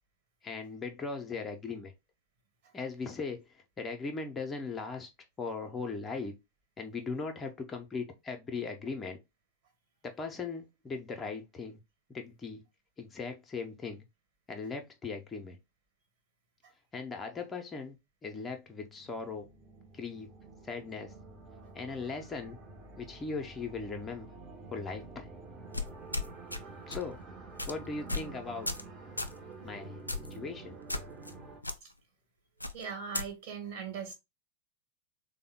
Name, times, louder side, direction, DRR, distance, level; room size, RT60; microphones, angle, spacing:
voice 1, 0.4-1.9 2.7-5.1 5.4-6.3 6.8-9.2 10.0-11.8 12.1-12.6 13.0-14.0 14.5-15.6 16.9-19.5 19.9-20.3 20.6-21.1 21.7-22.6 23.0-24.3 24.7-25.3 26.9-27.2 27.7-28.7 29.6-30.0 30.3-30.8, left 4 dB, 20° left, 0.6 m, -39 dB
sound 1, 18.8-31.6, right 3 dB, 25° right, 0.7 m, -49 dB
sound 2, 25.7-26.6 26.9-27.1 27.6-27.7 28.1-28.3 28.7-28.9 29.2-29.4 30.1-30.4 30.9-31.3 31.6-31.8 32.6-33.3, left 2 dB, 85° left, 0.3 m, -35 dB
voice 2, 32.7-34.1, right 6 dB, 50° right, 1.2 m, -39 dB
3.5 x 2.1 x 3.4 m
figure-of-eight pair, 90°, 0 cm